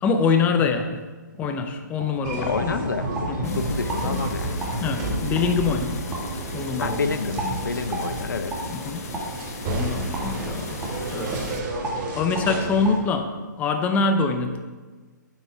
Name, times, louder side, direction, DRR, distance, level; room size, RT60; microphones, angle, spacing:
voice 1, 0.0-1.0 1.4-2.8 3.3-3.6 4.8-6.0 6.5-7.0 8.7-9.0 9.7-10.8 11.1-11.6 12.1-14.6, left 5 dB, 15° left, 6 dB, 0.6 m, -24 dB
sound 1, 1.4-1.5 2.0-2.1 2.5-3.3 3.8-4.0 4.6-4.7 5.3-5.5 6.1-6.2 6.8-6.9 7.4-7.5 7.9-8.1 8.5-8.6 9.1-9.3 10.1-10.3 10.8-11.0 11.3-11.5 11.8-12.0 12.3-12.5 12.8-12.9, right 2 dB, 10° right, 1.9 m, -32 dB
sound 2, 2.2-13.0, right 2 dB, 30° right, 2.1 m, -30 dB
voice 2, 2.4-4.6 6.8-8.6, left 5 dB, 75° left, 10 dB, 0.7 m, -29 dB
sound 3, 3.4-11.6, left 6 dB, 50° left, 0.9 m, -41 dB
9.2 x 7.3 x 4.7 m, 1.4 s
hypercardioid pair, 140°, 11 cm